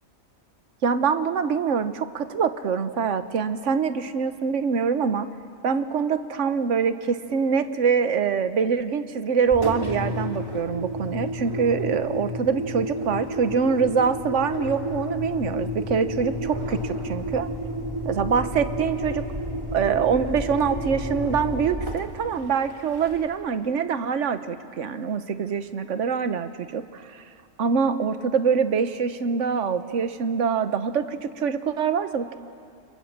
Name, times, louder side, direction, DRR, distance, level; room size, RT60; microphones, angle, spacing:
voice 1, 0.8-5.3 5.6-17.5 18.0-19.2 19.7-27.2 27.6-32.3, right 6 dB, 60° right, 11 dB, 1.3 m, -24 dB
Engine, 9.5-23.4, equal, 20° right, 2.9 m, -31 dB
29.0 x 27.0 x 7.4 m, 2.5 s
omnidirectional pair, 1.5 m